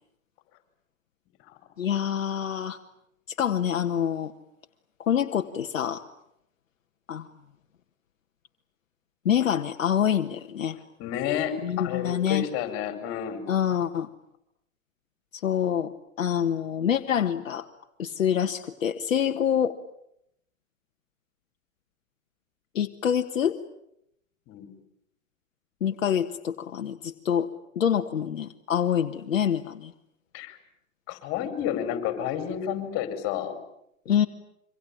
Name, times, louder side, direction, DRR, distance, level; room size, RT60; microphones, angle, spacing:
voice 1, 1.8-2.8 3.4-4.3 5.1-6.0 7.1-7.3 9.2-10.8 11.6-12.4 13.5-14.1 15.3-15.9 16.2-17.7 18.0-19.8 22.7-23.6 25.8-27.5 27.7-29.9 34.1-34.3, left 9 dB, 70° left, 6 dB, 1.6 m, -26 dB
voice 2, 11.0-13.4 24.5-24.7 30.3-30.6 31.1-33.6, left 10 dB, 35° left, 9 dB, 5.3 m, -30 dB
26.5 x 25.0 x 8.7 m, 0.77 s
hypercardioid pair, 120°, 40 cm